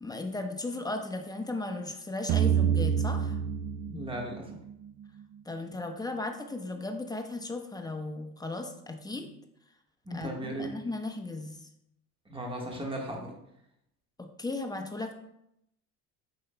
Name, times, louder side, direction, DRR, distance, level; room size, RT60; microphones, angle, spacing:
voice 1, 0.0-3.4 5.5-9.3 10.1-11.7 14.2-15.1, left 2 dB, 10° left, 4 dB, 0.8 m, -36 dB
sound 1, 2.3-5.2, right 8 dB, 40° right, 0.5 m, -28 dB
voice 2, 3.9-4.5 9.2-9.3 10.1-10.7 12.3-13.3, right 1 dB, 10° right, 0 dB, 1.4 m, -36 dB
7.6 x 5.8 x 2.2 m, 0.79 s
hypercardioid pair, 70°, 50 cm